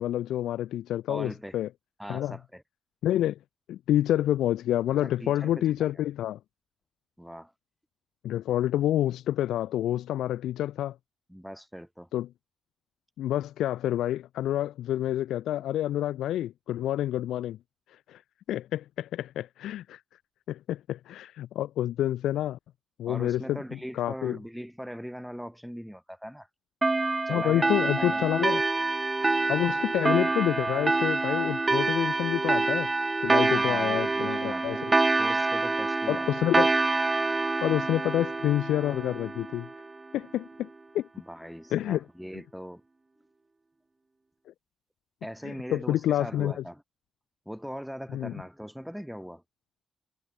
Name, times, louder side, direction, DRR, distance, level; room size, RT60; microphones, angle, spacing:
voice 1, 0.0-1.7 2.1-2.4 3.0-3.4 3.7-6.4 8.2-11.0 12.1-12.3 13.2-17.6 17.9-18.2 18.5-20.0 20.5-22.6 23.0-23.6 23.9-24.4 27.3-28.6 29.5-32.9 33.2-34.8 36.1-36.7 37.6-39.7 40.1-40.7 40.9-41.1 41.7-42.0 45.4-46.6 48.1-48.3, left 12 dB, 90° left, 0.4 m, -28 dB
voice 2, 1.1-1.6 2.0-2.6 4.9-5.9 7.2-7.5 11.3-12.1 23.1-26.5 27.3-27.7 28.0-28.3 33.4-34.9 35.2-36.3 41.1-42.8 45.2-46.8 47.5-49.4, equal, ahead, 2.1 m, -40 dB
sound 1, 26.8-39.9, right 3 dB, 25° right, 0.4 m, -26 dB
cardioid pair, 70°, 0 cm